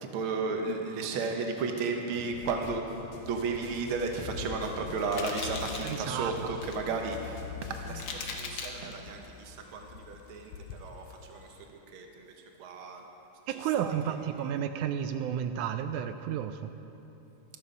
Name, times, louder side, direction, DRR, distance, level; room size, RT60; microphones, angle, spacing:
voice 1, 0.0-13.0 13.5-14.1, right 4 dB, 60° right, 3 dB, 1.4 m, -34 dB
sound 1, 2.1-8.1, left 2 dB, 50° left, 2.0 m, -46 dB
sound 2, 3.3-11.7, left 7 dB, 75° left, 2.0 m, -46 dB
sound 3, 5.1-6.0 6.4-6.8 7.4-7.5 7.9-8.9, left 4 dB, 90° left, 1.0 m, -39 dB
voice 2, 5.8-6.5 13.5-16.7, right 9 dB, 80° right, 8 dB, 1.9 m, -32 dB
13.0 x 12.5 x 5.2 m, 3.0 s
omnidirectional pair, 3.7 m